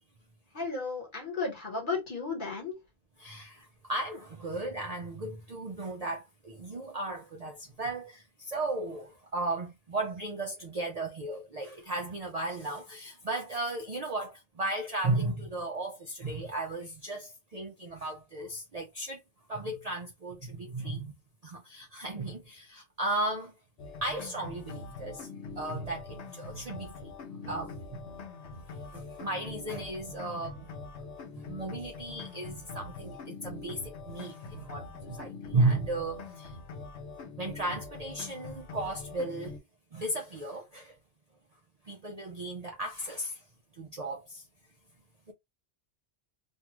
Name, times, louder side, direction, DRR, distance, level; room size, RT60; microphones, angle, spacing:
voice 1, 0.5-2.7, left 4 dB, 45° left, 1.3 m, -34 dB
voice 2, 3.2-19.2 19.5-21.1 21.4-23.5 24.0-25.3 25.6-27.1 27.4-28.1 28.9-30.7 31.3-36.6 37.4-39.6 39.9-40.9 41.8-43.4 43.8-44.4, right 2 dB, 50° right, 0.5 m, -35 dB
sound 1, 23.8-39.6, left 3 dB, 80° left, 0.9 m, -43 dB
2.6 x 2.3 x 2.9 m
omnidirectional pair, 1.2 m